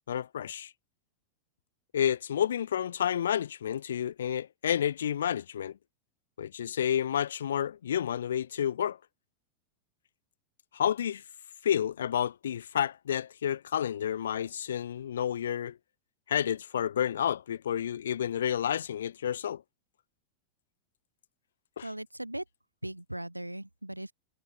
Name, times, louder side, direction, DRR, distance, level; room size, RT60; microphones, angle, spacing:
voice 1, 0.1-0.7 1.9-5.8 6.4-9.0 10.7-11.2 11.6-15.8 16.3-19.6 21.8-21.9, left 9 dB, 65° left, 0.5 m, -30 dB
voice 2, 21.8-22.4 22.8-24.1, right 1 dB, 85° right, 0.6 m, -38 dB
figure-of-eight pair, 90°, 0 cm